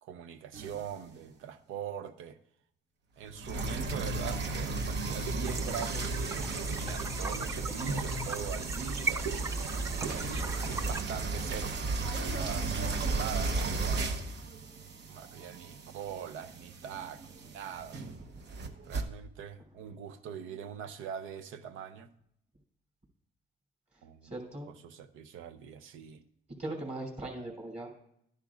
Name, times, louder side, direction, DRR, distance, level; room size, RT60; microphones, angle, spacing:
voice 1, 0.0-2.4 3.2-9.3 10.2-10.5 10.8-14.2 15.1-18.1 18.8-22.1 24.0-24.3 24.8-26.2, right 8 dB, 85° right, 0.6 m, -42 dB
sound 1, 0.5-1.1 3.3-19.0, right 3 dB, 60° right, 0.9 m, -35 dB
sound 2, 5.4-11.0, right 3 dB, 15° right, 0.3 m, -38 dB
voice 2, 9.7-10.1 18.4-18.5 24.2-24.7 26.6-28.0, right 2 dB, 35° right, 3.0 m, -40 dB
12.5 x 10.0 x 2.4 m
cardioid pair, 90°, 20 cm